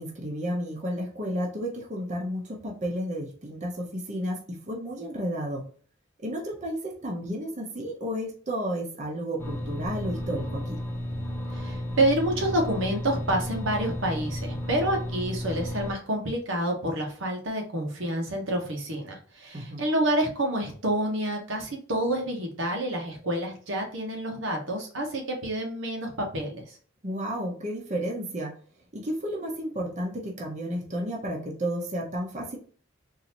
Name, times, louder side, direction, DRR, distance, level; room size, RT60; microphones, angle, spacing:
voice 1, 0.0-5.6 6.2-10.8 19.5-19.8 27.0-28.5 28.9-32.6, equal, 40° right, 0 dB, 0.8 m, -32 dB
sound 1, 9.4-15.9, left 1 dB, 15° left, 0.8 m, -33 dB
voice 2, 11.5-26.6, right 1 dB, 90° right, 1 dB, 1.2 m, -28 dB
3.9 x 2.7 x 2.9 m, 0.43 s
head